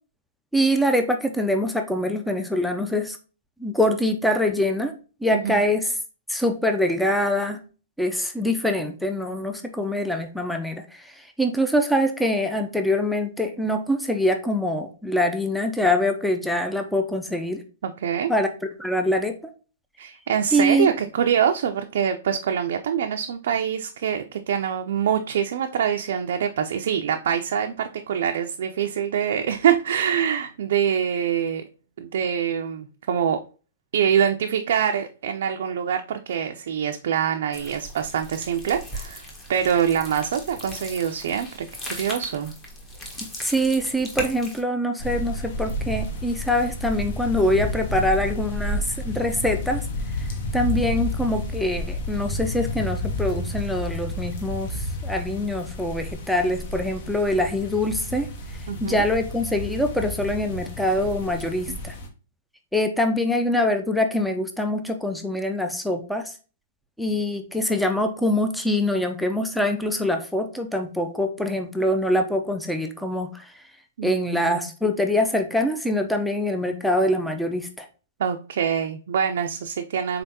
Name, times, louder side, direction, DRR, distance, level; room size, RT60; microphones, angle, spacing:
voice 1, 0.5-3.2 3.6-4.9 5.2-5.9 6.3-7.6 8.0-10.8 11.4-17.6 18.3-18.5 18.8-19.4 20.5-20.9 43.4-49.8 50.5-58.3 58.8-61.9 62.7-66.3 67.0-73.4 74.0-77.9, left 1 dB, ahead, 0.4 m, -24 dB
voice 2, 5.3-5.7 17.8-18.3 20.0-31.6 32.0-33.4 33.9-42.5 58.7-59.0 74.0-74.7 78.2-80.2, right 8 dB, 70° right, 0.4 m, -25 dB
sound 1, 37.5-44.6, left 1 dB, 15° left, 1.1 m, -38 dB
sound 2, 45.0-62.1, left 1 dB, 55° left, 0.9 m, -31 dB
3.8 x 3.3 x 2.8 m
hypercardioid pair, 140°, 0 cm